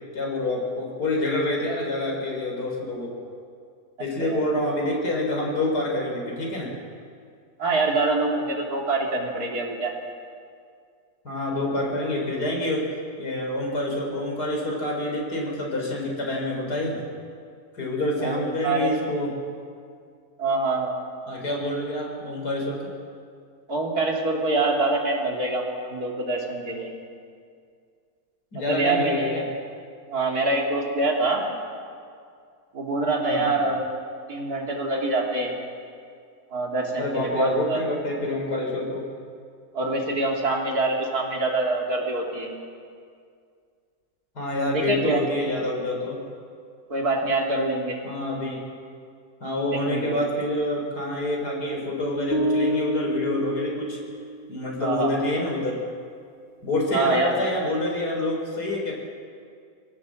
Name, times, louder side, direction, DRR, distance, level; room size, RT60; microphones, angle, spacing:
voice 1, 0.1-3.2 4.0-6.7 11.2-17.0 17.7-19.3 21.3-22.9 28.5-29.5 33.2-33.5 37.0-39.0 44.3-46.2 48.0-48.6 49.4-54.0 54.5-55.8 56.6-58.9, left 1 dB, 80° left, -1 dB, 4.9 m, -27 dB
voice 2, 7.6-9.9 18.2-18.9 20.4-20.9 23.7-26.9 28.7-29.4 30.1-31.4 32.7-33.8 34.3-35.5 36.5-37.8 39.7-42.5 44.7-45.2 46.9-48.0 49.7-50.2 54.8-55.1 56.9-57.4, right 2 dB, 70° right, 0 dB, 3.3 m, -25 dB
sound 1, 52.3-54.5, equal, 10° right, 1.0 m, -27 dB
25.0 x 17.5 x 7.7 m, 2.2 s
omnidirectional pair, 1.7 m